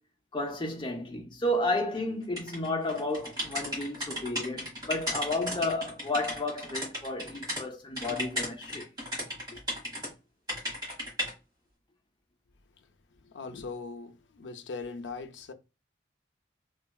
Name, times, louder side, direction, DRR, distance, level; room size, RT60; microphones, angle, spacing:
voice 1, 0.3-8.9, left 1 dB, 25° left, 0.6 m, -32 dB
sound 1, 2.4-7.6 8.0-10.1 10.5-11.3, equal, 20° right, 1.3 m, -35 dB
voice 2, 13.2-15.5, left 4 dB, 70° left, 0.4 m, -40 dB
3.1 x 2.3 x 2.3 m
head